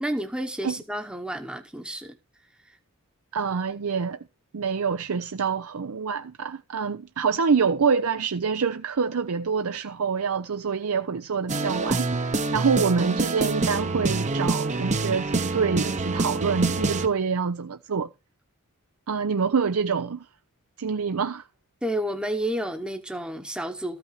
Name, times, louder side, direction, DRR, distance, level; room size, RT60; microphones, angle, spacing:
voice 1, 0.0-2.2 21.8-24.0, right 1 dB, 5° right, 0.9 m, -30 dB
voice 2, 3.3-4.2 4.5-18.1 19.1-20.3 20.8-21.4, right 5 dB, 75° right, 0.6 m, -26 dB
sound 1, 11.5-17.1, right 3 dB, 35° right, 0.8 m, -26 dB
14.0 x 5.9 x 5.7 m
head